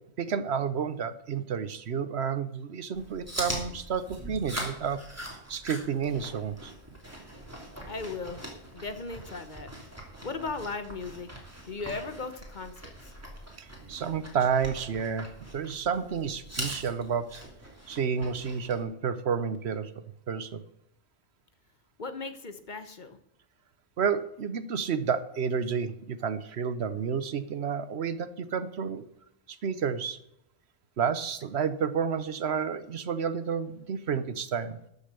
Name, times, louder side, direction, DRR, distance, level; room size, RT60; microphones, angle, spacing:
voice 1, 0.2-5.0 5.5-6.7 13.6-17.4 17.9-19.9 20.3-20.6 24.0-29.0 29.5-30.2 31.0-34.8, right 6 dB, 70° right, 13 dB, 1.1 m, -30 dB
Chewing mastication, 2.9-18.8, right 1 dB, 15° right, 2.9 m, -42 dB
voice 2, 7.9-8.4 8.7-9.7 10.2-11.3 11.7-12.9 22.0-23.2, left 4 dB, 45° left, 10 dB, 1.2 m, -37 dB
13.0 x 6.9 x 6.8 m, 0.78 s
omnidirectional pair, 1.1 m